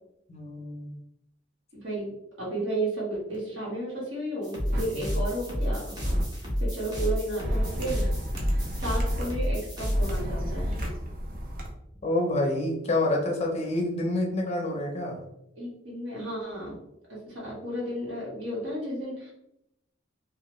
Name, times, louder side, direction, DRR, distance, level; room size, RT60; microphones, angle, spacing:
voice 1, 0.3-1.0 4.9-5.0 12.0-15.2, left 2 dB, 35° left, 1 dB, 0.6 m, -28 dB
voice 2, 1.7-2.1 2.4-5.9 6.6-8.1 8.5-10.7 15.5-16.8 17.3-19.3, right 1 dB, 70° right, -5 dB, 1.4 m, -33 dB
sound 1, 4.4-10.2, equal, 20° right, 0.9 m, -29 dB
sound 2, 4.7-4.8 6.0-6.2 7.4-9.2 9.9-11.7, equal, 50° right, 0.7 m, -32 dB
2.9 x 2.4 x 3.0 m, 0.81 s
head